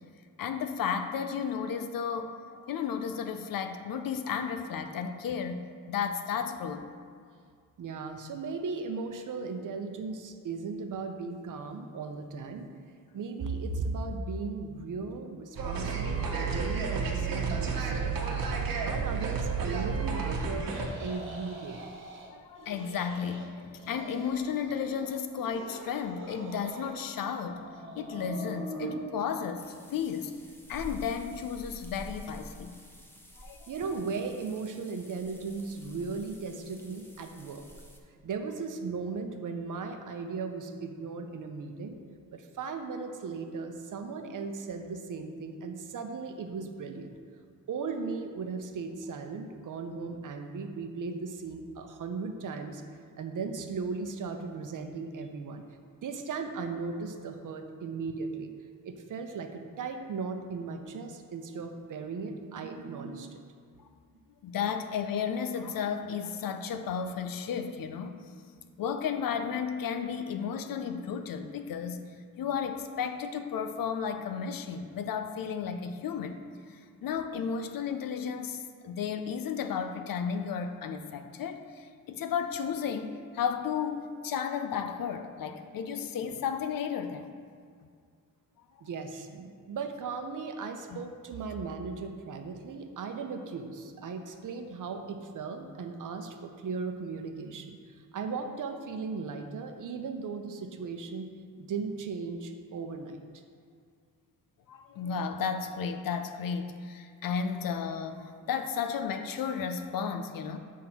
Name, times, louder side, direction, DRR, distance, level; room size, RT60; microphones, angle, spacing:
voice 1, 0.4-2.4 2.7-6.8 17.5-17.7 22.3-27.6 27.9-30.3 30.7-32.8 33.4-33.7 64.4-68.3 68.8-72.0 72.4-76.4 76.7-87.3 90.9-91.0 104.7-110.6, left 7 dB, 75° left, 8 dB, 0.6 m, -33 dB
voice 2, 7.8-12.7 13.1-18.2 18.8-20.7 21.0-21.8 33.7-37.6 38.2-42.0 42.3-47.1 47.7-52.8 53.2-55.6 56.0-58.5 58.8-63.5 88.8-101.3 101.6-103.2, right 4 dB, 60° right, 6 dB, 0.7 m, -37 dB
sound 1, 15.6-20.9, right 5 dB, 80° right, 1.1 m, -31 dB
sound 2, 20.6-22.3 22.6-23.5 23.7-25.1 25.4-27.1 27.4-28.9, right 2 dB, 35° right, 1.3 m, -43 dB
sound 3, 29.6-38.0, equal, 5° left, 0.8 m, -49 dB
7.8 x 3.7 x 5.8 m, 2.1 s
cardioid pair, 105°, 35 cm